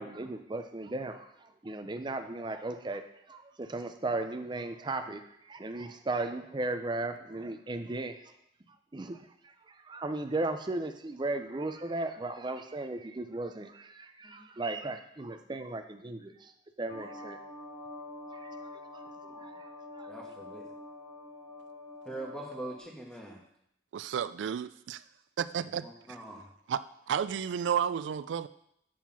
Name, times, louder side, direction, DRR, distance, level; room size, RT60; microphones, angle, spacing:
voice 1, 0.0-8.2 8.9-16.5 16.8-17.4 18.3-20.1, right 2 dB, 25° right, 7 dB, 0.5 m, -36 dB
voice 2, 14.2-15.0 16.8-16.9 20.1-20.7 22.0-23.4 25.8-26.5, right 2 dB, 5° left, -1 dB, 1.3 m, -44 dB
sound 1, 16.9-22.8, left 2 dB, 90° left, 1.8 m, -46 dB
voice 3, 23.9-25.0 25.4-25.9 26.7-26.8 27.1-28.5, right 8 dB, 85° right, 16 dB, 0.3 m, -31 dB
7.4 x 4.8 x 5.6 m, 0.75 s
head